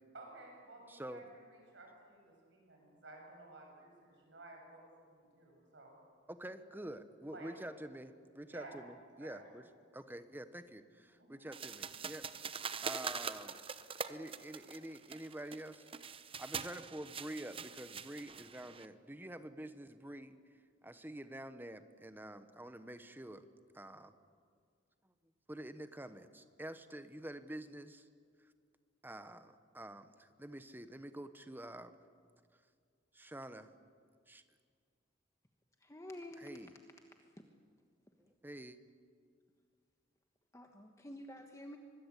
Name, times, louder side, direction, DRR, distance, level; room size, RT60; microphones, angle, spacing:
voice 1, 0.1-5.9 7.3-7.5 8.5-8.8 9.2-9.4 11.2-11.4, right 2 dB, 70° right, 0 dB, 7.6 m, -55 dB
voice 2, 0.9-1.2 6.3-9.6 9.9-12.3 12.8-13.6 14.1-15.9 16.4-20.4 20.8-23.5 23.7-24.1 25.5-28.1 29.0-31.9 33.1-33.7 34.3-34.4 36.4-36.7 38.2-38.8, right 1 dB, 10° right, 10 dB, 1.1 m, -47 dB
sound 1, 11.5-18.9, right 6 dB, 30° right, 0.8 m, -44 dB
voice 3, 35.8-36.6 40.5-41.8, left 1 dB, 15° left, 4 dB, 1.3 m, -49 dB
24.5 x 21.5 x 8.3 m, 2.1 s
head